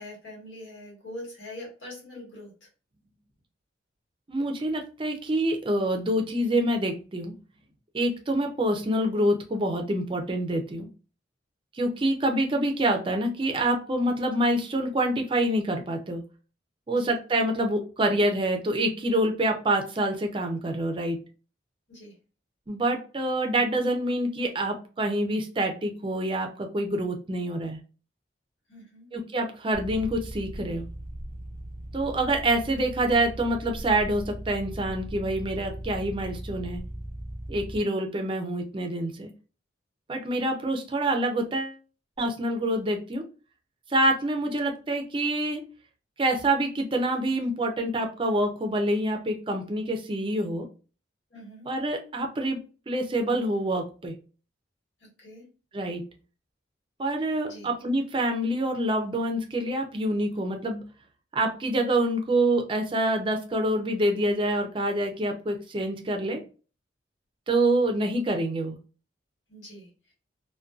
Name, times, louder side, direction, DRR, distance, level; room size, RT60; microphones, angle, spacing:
voice 1, 0.0-2.7 16.9-17.1 21.9-22.1 28.7-29.1 51.3-51.7 55.2-55.4 57.5-57.7 69.5-69.9, left 1 dB, 85° left, -2 dB, 1.3 m, -43 dB
voice 2, 4.3-7.3 7.9-10.9 11.7-16.2 16.9-21.2 22.7-27.8 29.1-30.9 31.9-36.8 37.5-39.3 40.1-41.8 42.2-43.2 43.9-45.6 46.2-50.7 51.7-52.6 52.9-54.2 55.7-56.0 57.0-60.8 61.3-66.4 67.5-68.8, right 1 dB, 30° right, 4 dB, 0.4 m, -26 dB
sound 1, 29.7-37.8, right 1 dB, 50° left, 0.9 m, -38 dB
2.5 x 2.2 x 2.3 m, 0.36 s
head